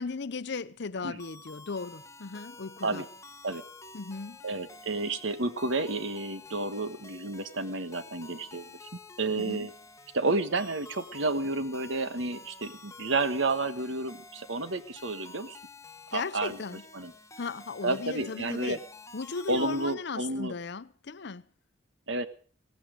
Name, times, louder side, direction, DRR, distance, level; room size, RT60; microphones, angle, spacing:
voice 1, 0.0-3.1 3.9-4.4 9.3-9.7 16.1-16.8 17.4-18.8 19.1-21.4, left 4 dB, 60° left, 0.7 m, -36 dB
sound 1, 1.2-19.9, left 3 dB, 15° left, 1.0 m, -50 dB
voice 2, 4.4-8.7 9.2-9.7 10.1-15.6 16.1-16.6 16.9-17.1 17.8-18.8 19.5-20.5 22.1-22.3, right 2 dB, 70° right, 1.5 m, -31 dB
17.5 x 15.5 x 5.1 m
head